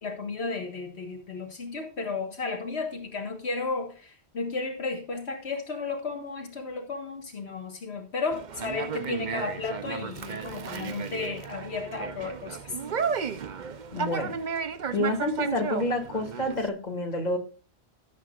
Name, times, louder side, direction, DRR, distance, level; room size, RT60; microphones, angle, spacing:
voice 1, 0.0-12.7, left 4 dB, 80° left, 3 dB, 1.8 m, -33 dB
Conversation, 8.3-16.7, right 6 dB, 50° right, 0.8 m, -34 dB
voice 2, 13.9-14.4 14.9-17.4, left 1 dB, 40° left, 2 dB, 2.6 m, -28 dB
17.5 x 8.1 x 2.5 m, 0.33 s
omnidirectional pair, 1.1 m